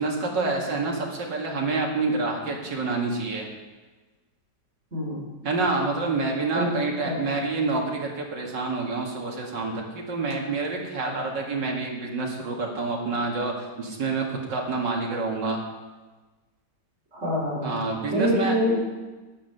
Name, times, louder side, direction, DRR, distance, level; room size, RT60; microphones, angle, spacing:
voice 1, 0.0-3.5 5.4-15.6 17.6-18.5, right 3 dB, 85° right, 0 dB, 2.8 m, -27 dB
voice 2, 4.9-5.2 6.5-7.3 17.1-17.7 18.1-18.8, equal, 40° right, -5 dB, 5.4 m, -26 dB
12.0 x 9.8 x 6.7 m, 1.3 s
omnidirectional pair, 1.9 m